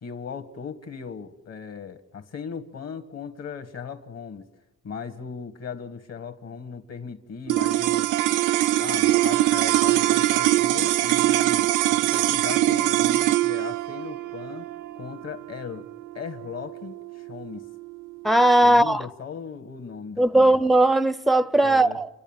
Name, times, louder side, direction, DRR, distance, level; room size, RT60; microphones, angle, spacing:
voice 1, 0.0-4.5 4.8-8.1 8.8-14.7 15.0-15.9 16.1-17.6 18.6-20.6 21.6-22.0, left 6 dB, 55° left, 1.9 m, -38 dB
sound 1, 7.5-17.9, right 15 dB, 85° right, 0.6 m, -23 dB
voice 2, 18.2-19.1 20.2-22.1, right 1 dB, ahead, 0.6 m, -18 dB
28.5 x 11.0 x 9.1 m
cardioid pair, 90°, 30 cm